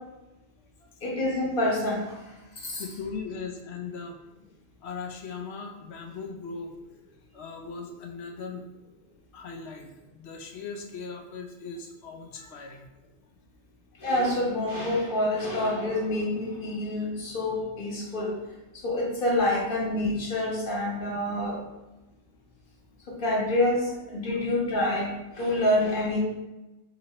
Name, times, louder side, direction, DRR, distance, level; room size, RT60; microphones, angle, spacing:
voice 1, 1.0-2.2 2.6-2.8 14.0-18.4 18.8-21.6 23.1-26.2, left 1 dB, 50° left, -3 dB, 1.2 m, -27 dB
voice 2, 2.8-4.2 4.8-6.7 7.3-8.6 9.3-12.9 24.3-24.4, left 5 dB, 65° left, 3 dB, 0.8 m, -39 dB
4.1 x 4.0 x 2.8 m, 1.0 s
omnidirectional pair, 1.2 m